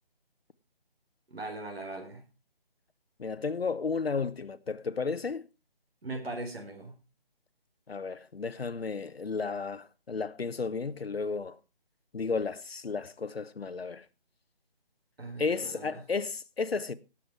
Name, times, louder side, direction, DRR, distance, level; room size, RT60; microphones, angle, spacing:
voice 1, 1.3-2.2 6.0-6.9 15.2-16.0, right 2 dB, 90° right, 4.1 m, -39 dB
voice 2, 3.2-5.4 7.9-11.6 12.1-14.0 15.4-16.9, left 4 dB, 80° left, 1.2 m, -33 dB
18.5 x 7.4 x 4.7 m
figure-of-eight pair, 175°, 30 cm